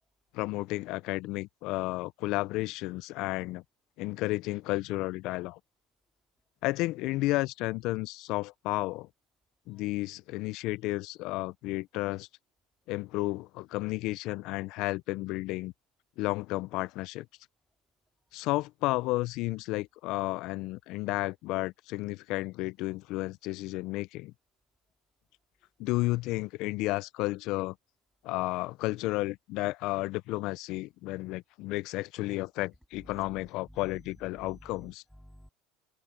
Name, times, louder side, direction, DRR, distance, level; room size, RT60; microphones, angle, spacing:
voice 1, 0.3-3.6 4.0-5.6 6.6-9.1 9.7-12.3 12.9-15.7 16.2-17.3 18.3-24.3 25.8-27.7 28.2-35.0, left 20 dB, 65° left, 0.6 m, -32 dB
voice 2, 32.9-34.1 34.4-35.5, equal, ahead, 3.1 m, -53 dB
hypercardioid pair, 90°, 0 cm